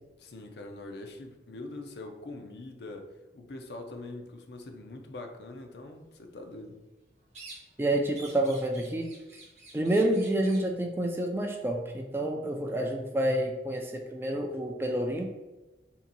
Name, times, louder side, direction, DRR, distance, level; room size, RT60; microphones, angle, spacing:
voice 1, 0.2-3.1 3.3-6.8, left 2 dB, 70° left, 4 dB, 0.5 m, -43 dB
sound 1, 7.3-7.9 8.1-10.7, right 2 dB, 40° right, 0.9 m, -49 dB
voice 2, 7.8-9.1 9.7-15.3, right 1 dB, 15° right, 2 dB, 0.3 m, -28 dB
3.5 x 2.8 x 3.9 m, 1.1 s
head